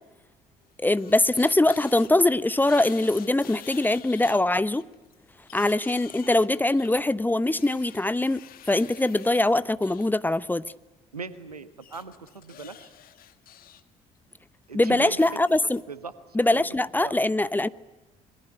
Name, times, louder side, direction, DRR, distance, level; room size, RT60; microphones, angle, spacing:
sound 1, 0.6-2.1 2.5-4.4 4.8-10.1 11.8-13.8 14.2-14.4 15.1-15.8, left 11 dB, 50° left, 1.8 m, -48 dB
voice 1, 0.8-4.8 5.5-10.6 14.7-15.8 16.3-17.7, left 2 dB, 10° left, 0.9 m, -22 dB
voice 2, 11.1-12.9 14.7-15.4 15.9-17.2, right 4 dB, 85° right, 1.3 m, -40 dB
27.0 x 22.5 x 9.6 m
figure-of-eight pair, 50°, 19 cm